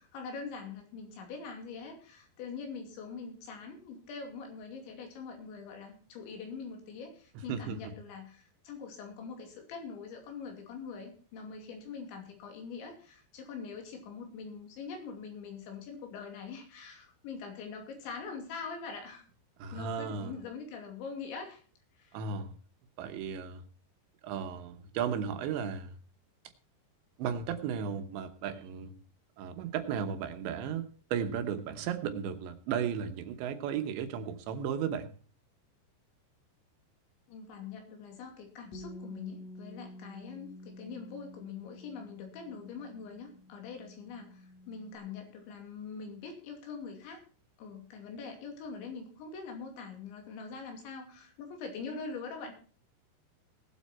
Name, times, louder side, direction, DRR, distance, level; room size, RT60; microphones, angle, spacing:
voice 1, 0.0-19.2 19.7-21.6 22.0-22.2 37.3-47.2 47.6-52.5, left 5 dB, 85° left, 3 dB, 5.0 m, -43 dB
voice 2, 7.5-7.9 19.6-20.3 22.1-22.5 23.0-23.6 24.2-25.9 27.2-28.9 29.4-35.1, right 7 dB, 80° right, 8 dB, 3.4 m, -35 dB
Bass guitar, 38.7-45.0, left 1 dB, 50° left, 2.5 m, -50 dB
18.5 x 8.1 x 4.3 m, 0.40 s
omnidirectional pair, 5.1 m